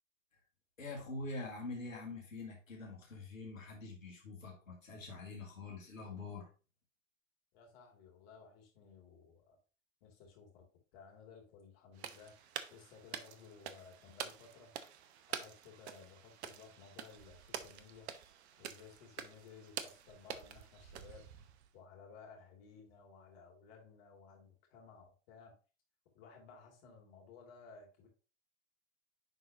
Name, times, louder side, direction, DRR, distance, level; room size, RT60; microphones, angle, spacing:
voice 1, 0.8-6.5, left 3 dB, 90° left, -2 dB, 2.1 m, -45 dB
voice 2, 7.5-9.6 10.0-10.6 10.9-14.7 15.3-18.1 18.6-21.2 21.7-25.5 26.1-28.1, left 5 dB, 50° left, 1 dB, 2.7 m, -57 dB
sound 1, 12.0-21.7, right 9 dB, 55° right, 0.9 m, -48 dB
10.5 x 4.0 x 2.8 m, 0.35 s
hypercardioid pair, 100°, 39 cm